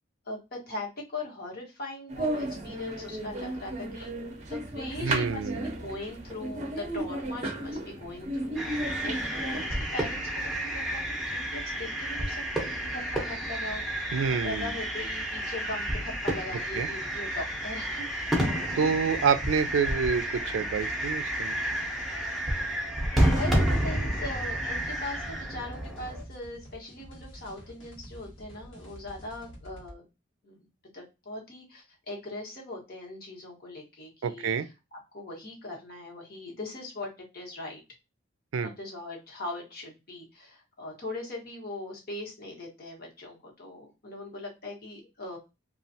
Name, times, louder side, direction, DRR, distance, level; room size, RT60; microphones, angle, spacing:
voice 1, 0.2-4.1 4.5-8.7 9.0-9.3 9.6-14.1 14.4-18.2 18.6-19.0 23.1-30.0 30.4-30.7 30.9-34.6 34.9-37.8 38.6-45.4, left 2 dB, 50° left, 1.2 m, -40 dB
sound 1, 2.1-9.7, right 1 dB, 35° right, 0.7 m, -34 dB
voice 2, 5.0-5.7 14.1-14.7 16.7-16.9 18.7-21.6 34.2-34.7 38.5-38.7, right 6 dB, 80° right, 0.4 m, -27 dB
sound 2, 8.6-26.2, right 1 dB, ahead, 0.8 m, -30 dB
sound 3, 24.3-30.0, equal, 75° left, 1.1 m, -49 dB
3.1 x 2.4 x 2.7 m
head